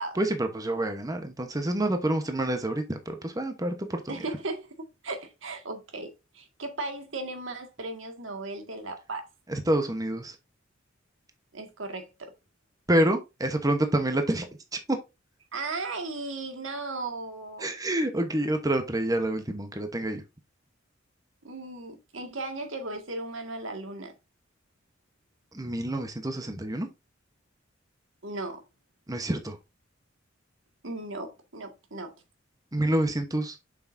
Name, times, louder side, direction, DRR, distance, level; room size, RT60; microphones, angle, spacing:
voice 1, 0.1-4.1 9.5-10.3 12.9-14.5 14.7-15.0 17.6-20.2 25.5-26.9 29.1-29.6 32.7-33.6, right 1 dB, 20° right, 1.0 m, -27 dB
voice 2, 4.1-6.1 6.3-9.3 11.5-12.3 15.5-17.7 21.4-24.1 28.2-28.6 30.8-32.1, right 2 dB, 75° right, 1.8 m, -36 dB
7.8 x 6.0 x 2.6 m
head